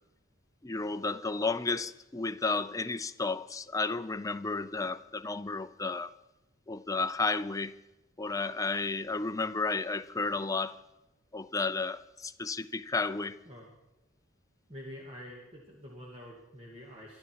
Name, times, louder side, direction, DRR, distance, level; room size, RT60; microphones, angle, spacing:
voice 1, 0.6-6.1 6.7-7.7 8.2-10.7 11.3-13.4, left 3 dB, 15° left, 0.6 m, -32 dB
voice 2, 14.7-17.2, equal, 30° right, 2.4 m, -47 dB
24.5 x 12.5 x 4.8 m
head